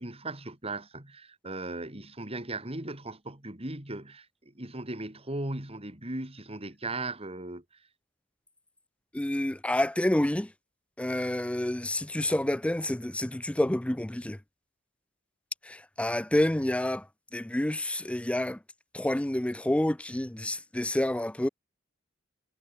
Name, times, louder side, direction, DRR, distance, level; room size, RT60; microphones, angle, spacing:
voice 1, 0.0-7.8, right 2 dB, 30° right, 3.8 m, -38 dB
voice 2, 9.1-10.5 11.0-14.4 15.7-17.0 17.3-18.6 18.9-21.5, left 1 dB, 5° left, 0.4 m, -28 dB
head